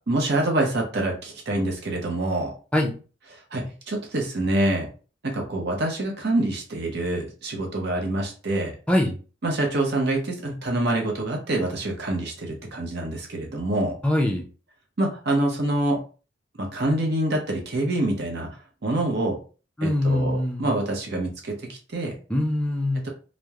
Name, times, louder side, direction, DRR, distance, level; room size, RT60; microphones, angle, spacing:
voice 1, 0.1-2.5 3.5-4.9 5.2-8.7 9.4-14.0 15.0-16.0 16.6-18.5 18.8-19.4 19.8-22.1 23.0-23.1, right 1 dB, 50° right, 1 dB, 0.7 m, -26 dB
voice 2, 14.0-14.5 19.8-20.7 22.3-23.0, left 1 dB, 5° left, 1 dB, 0.4 m, -23 dB
2.9 x 2.0 x 2.3 m, 0.36 s
head